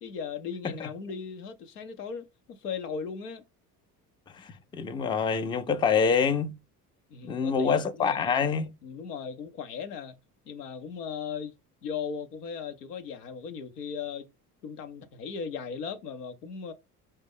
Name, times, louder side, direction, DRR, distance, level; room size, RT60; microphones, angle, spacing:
voice 1, 0.0-3.4 7.1-8.5 8.8-10.2 10.5-11.5 11.8-14.3 14.6-16.7, left 6 dB, 85° left, 0.6 m, -37 dB
voice 2, 4.4-6.5 7.2-8.7, left 6 dB, 10° left, 0.4 m, -26 dB
4.8 x 2.1 x 3.6 m
hypercardioid pair, 55°, 46 cm